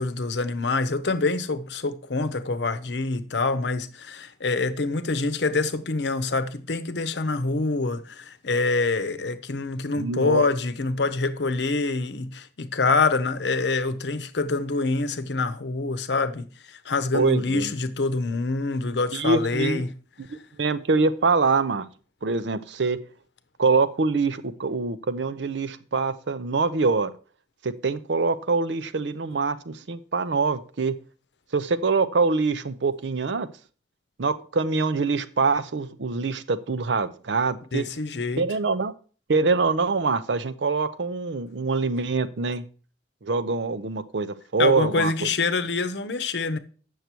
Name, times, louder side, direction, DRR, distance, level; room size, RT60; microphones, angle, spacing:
voice 1, 0.0-19.9 37.7-38.4 44.6-46.6, left 3 dB, 75° left, 0.8 m, -26 dB
voice 2, 10.0-10.4 17.1-17.7 19.1-19.8 20.3-21.8 22.2-23.0 23.6-27.1 27.6-30.9 31.5-33.5 34.2-37.9 38.4-38.9 39.3-42.6 43.2-45.3, right 4 dB, 85° right, 0.6 m, -24 dB
8.1 x 6.5 x 4.4 m
head